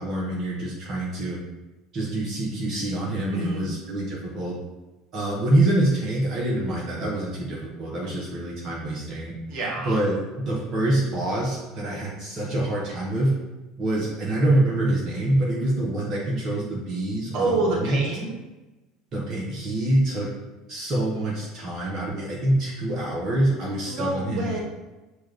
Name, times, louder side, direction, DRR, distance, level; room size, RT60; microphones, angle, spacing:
voice 1, 0.0-1.4 1.9-4.5 5.1-9.3 9.8-13.3 13.8-18.0 19.1-20.3 20.7-24.6, right 1 dB, 40° right, -4 dB, 1.0 m, -25 dB
voice 2, 3.3-3.7 9.5-9.9 17.3-18.3 23.8-24.6, right 2 dB, 60° right, -3 dB, 1.2 m, -27 dB
6.0 x 2.4 x 3.3 m, 1.1 s
hypercardioid pair, 70°, 0 cm